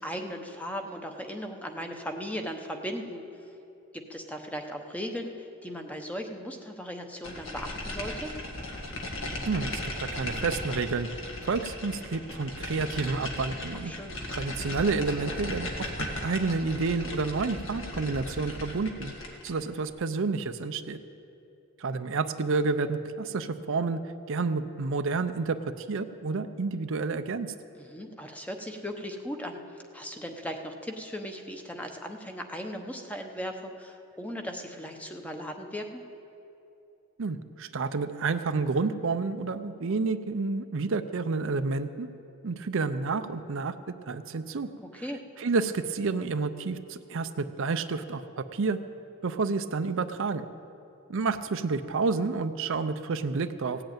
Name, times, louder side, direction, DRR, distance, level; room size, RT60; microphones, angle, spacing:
voice 1, 0.0-3.2 3.9-8.3 13.8-14.2 27.7-29.6 29.9-36.0 44.8-45.2, equal, 5° left, 4 dB, 0.9 m, -37 dB
sound 1, 7.2-19.6, left 1 dB, 65° left, 1.9 m, -37 dB
voice 2, 9.5-11.1 11.4-13.9 14.3-15.9 16.2-19.1 19.4-21.0 21.8-24.0 24.3-27.5 37.2-42.1 42.4-43.7 44.1-44.7 45.4-48.8 49.2-50.5 51.1-53.8, right 4 dB, 60° right, 9 dB, 0.5 m, -29 dB
16.5 x 7.9 x 8.9 m, 2.9 s
head